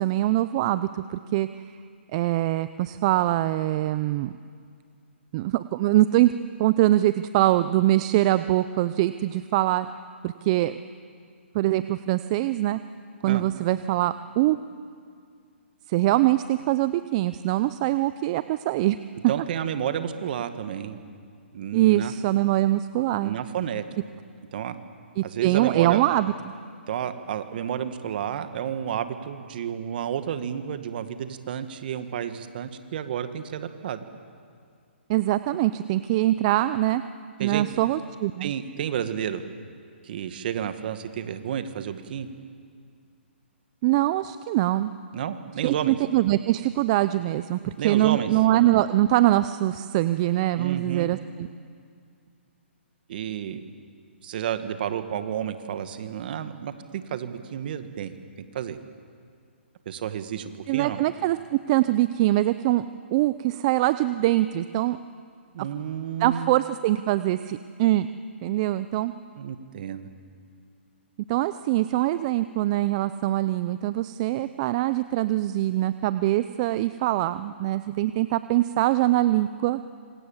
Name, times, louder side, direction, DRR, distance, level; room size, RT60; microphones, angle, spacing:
voice 1, 0.0-1.5 2.1-4.3 5.3-6.3 6.6-9.9 10.2-10.8 11.5-12.8 13.2-14.6 15.9-19.0 21.7-23.4 25.2-26.3 35.1-37.0 37.4-38.5 43.8-44.9 45.6-51.5 60.7-62.8 63.1-65.0 66.2-68.1 68.4-69.1 71.3-79.8, right 15 dB, 30° right, 13 dB, 0.6 m, -23 dB
voice 2, 19.3-21.0 21.5-22.1 23.2-23.8 24.5-24.8 25.2-26.0 26.9-34.0 37.4-37.7 38.4-39.4 40.0-42.3 45.1-46.0 47.8-48.3 50.5-51.1 53.1-53.6 54.2-56.7 57.1-58.2 58.5-58.8 59.9-61.0 65.5-66.5 69.4-70.1, right 9 dB, 50° right, 9 dB, 1.9 m, -31 dB
26.5 x 25.5 x 7.4 m, 2.2 s
hypercardioid pair, 150°, 7 cm